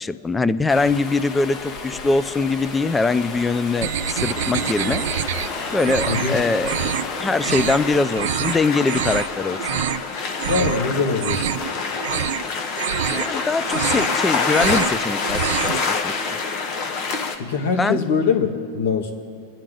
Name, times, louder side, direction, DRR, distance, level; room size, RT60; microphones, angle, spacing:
voice 1, 0.0-5.0 5.7-6.7 7.2-9.6 13.1-16.1 17.8-18.0, left 3 dB, 10° left, 15 dB, 0.4 m, -22 dB
Stream, 0.7-8.0, left 3 dB, 35° left, 1.4 m, -34 dB
sound 1, 3.8-5.5 5.8-6.3 6.6-7.1 7.4-7.8 8.2-8.6 8.9-9.3 9.6-10.0 10.4-10.8 11.1-11.7 12.0-12.4 12.8-13.3 13.6-14.2 14.5-15.0 15.2-15.8, right 11 dB, 75° right, 0.4 m, -26 dB
sound 2, 4.1-17.4, left 4 dB, 50° left, 1.1 m, -27 dB
voice 2, 6.1-6.4 10.4-11.5 17.4-19.1, left 5 dB, 75° left, 3 dB, 1.8 m, -22 dB
24.5 x 10.0 x 3.9 m, 2.4 s
supercardioid pair, 125°, 0 cm